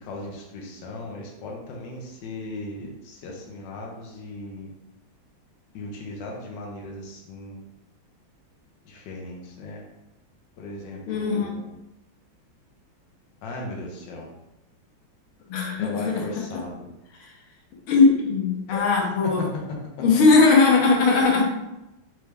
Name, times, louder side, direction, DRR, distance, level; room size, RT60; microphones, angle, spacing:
voice 1, 0.0-4.7 5.7-7.6 8.8-9.8 10.6-11.7 13.4-14.3 15.8-16.8 18.7-19.6, left 2 dB, 70° left, -2 dB, 1.4 m, -37 dB
voice 2, 11.1-11.5 15.5-16.2 17.2-17.3 17.9-19.5 20.0-21.4, left 4 dB, 90° left, -1 dB, 1.7 m, -19 dB
4.6 x 2.7 x 3.3 m, 0.90 s
omnidirectional pair, 2.3 m